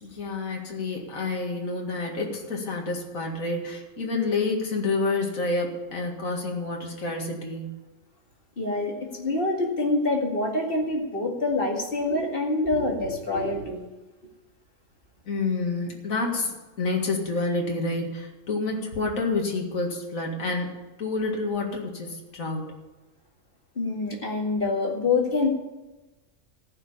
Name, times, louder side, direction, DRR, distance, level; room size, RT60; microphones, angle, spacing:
voice 1, 0.0-7.8 15.3-16.5 16.8-20.7 21.0-22.7, left 3 dB, 70° left, 1 dB, 2.4 m, -28 dB
voice 2, 8.6-13.8 23.8-25.5, left 2 dB, 40° left, 0 dB, 2.4 m, -26 dB
14.5 x 6.3 x 9.8 m, 1.1 s
omnidirectional pair, 1.5 m